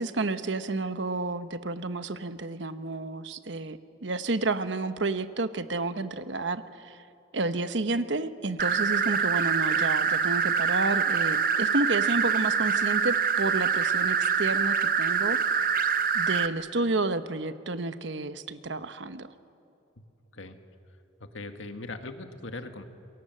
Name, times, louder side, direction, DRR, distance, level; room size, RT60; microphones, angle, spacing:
voice 1, 0.0-7.0 7.3-15.4 16.1-19.3, right 2 dB, 70° right, 11 dB, 1.1 m, -30 dB
sound 1, 8.6-16.5, right 6 dB, 45° right, 0.9 m, -25 dB
voice 2, 21.2-22.8, left 2 dB, 80° left, 7 dB, 1.7 m, -40 dB
27.5 x 22.0 x 7.7 m, 2.7 s
head